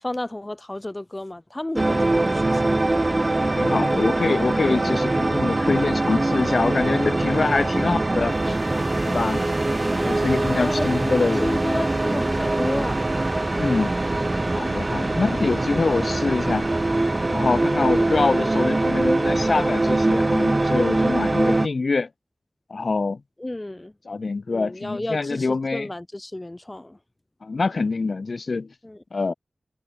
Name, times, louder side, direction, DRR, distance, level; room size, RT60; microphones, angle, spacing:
voice 1, 0.0-2.7 4.7-5.0 9.9-10.9 11.4-13.1 23.4-23.9 24.5-27.0 28.8-29.0, left 1 dB, 25° left, 1.8 m, -32 dB
sound 1, 1.8-21.7, right 2 dB, 35° right, 2.3 m, -22 dB
voice 2, 3.5-8.6 9.0-9.4 10.0-11.6 13.5-13.9 14.5-16.7 17.3-22.1 22.7-23.2 24.0-25.9 27.4-28.7 29.1-29.3, left 4 dB, 65° left, 1.2 m, -25 dB
cardioid pair, 45°, 0 cm